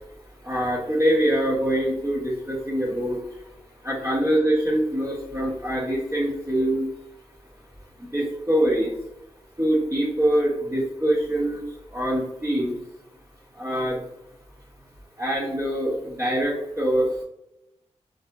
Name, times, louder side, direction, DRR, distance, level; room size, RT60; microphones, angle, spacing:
voice 1, 0.4-3.4 3.8-6.9 8.0-8.9 9.6-12.7 13.5-14.0 15.2-17.2, right 1 dB, 20° right, -8 dB, 1.0 m, -24 dB
2.7 x 2.4 x 2.2 m, 0.85 s
cardioid pair, 50°, 12 cm